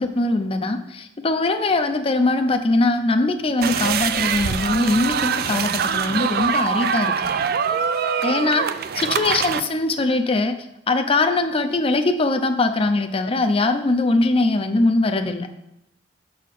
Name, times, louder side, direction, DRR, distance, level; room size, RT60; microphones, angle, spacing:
voice 1, 0.0-7.1 8.2-8.7 8.9-10.5 10.9-15.5, left 2 dB, 30° left, 6 dB, 0.6 m, -21 dB
sound 1, 3.6-9.6, right 7 dB, 55° right, 0.4 m, -23 dB
7.3 x 4.2 x 6.5 m, 0.83 s
head